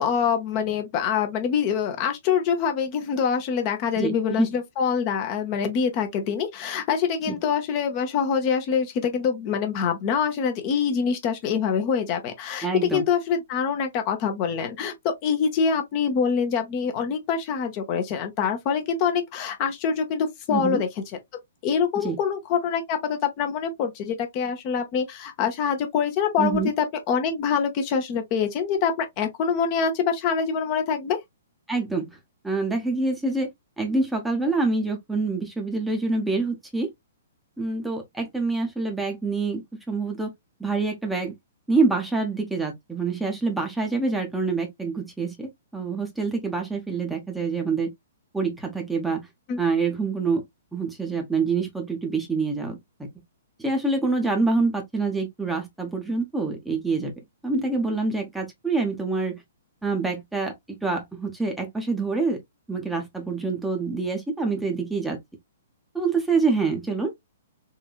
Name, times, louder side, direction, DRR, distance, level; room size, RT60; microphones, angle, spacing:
voice 1, 0.0-20.9 21.6-31.2 49.5-49.6, left 6 dB, 30° left, 0.8 m, -25 dB
voice 2, 4.0-4.5 7.3-7.4 12.6-13.0 20.5-20.8 22.0-22.2 26.4-26.7 31.7-32.1 32.4-33.5 33.8-36.9 37.6-39.6 39.9-40.3 40.6-41.3 41.7-47.9 48.3-49.3 49.6-50.4 50.7-53.1 53.6-57.1 57.4-59.4 59.8-62.4 62.7-65.2 65.9-67.1, right 3 dB, 5° right, 0.8 m, -26 dB
3.9 x 2.6 x 2.4 m
figure-of-eight pair, 115°, 0 cm